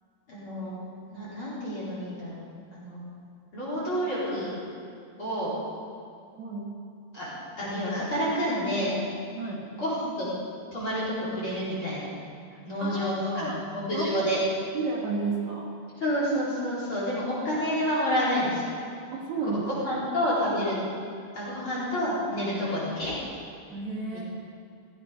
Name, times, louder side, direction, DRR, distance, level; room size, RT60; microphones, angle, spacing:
voice 1, 0.3-0.8 1.1-3.0 3.5-4.6 5.2-5.5 7.1-7.3 7.6-9.0 9.7-10.3 10.7-12.1 12.6-14.4 16.0-18.6 19.6-20.8 21.3-23.1 24.1-24.2, equal, 30° left, -8 dB, 4.6 m, -29 dB
voice 2, 12.5-13.6 13.9-14.3 14.7-15.7 19.1-20.0 21.6-21.7 23.7-24.2, right 3 dB, 55° right, -2 dB, 2.4 m, -32 dB
17.0 x 15.5 x 5.2 m, 2.4 s
omnidirectional pair, 4.8 m